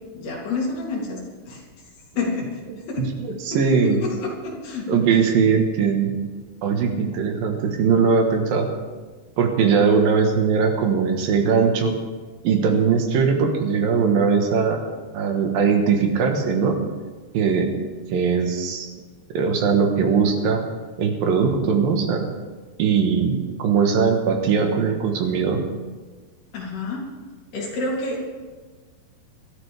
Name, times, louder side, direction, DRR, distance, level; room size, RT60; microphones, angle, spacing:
voice 1, 0.1-1.6 2.2-2.6 2.9-3.1 3.5-5.1 26.5-27.1 27.5-28.2, left 3 dB, 80° left, -3 dB, 5.1 m, -29 dB
voice 2, 2.7-4.0 4.9-6.1 6.6-8.7 9.4-11.9 12.4-14.8 15.1-16.8 17.3-17.7 18.1-18.9 19.3-20.6 21.0-22.3 22.8-25.6, right 5 dB, 70° right, 3 dB, 3.1 m, -20 dB
24.5 x 13.0 x 3.5 m, 1.4 s
omnidirectional pair, 4.5 m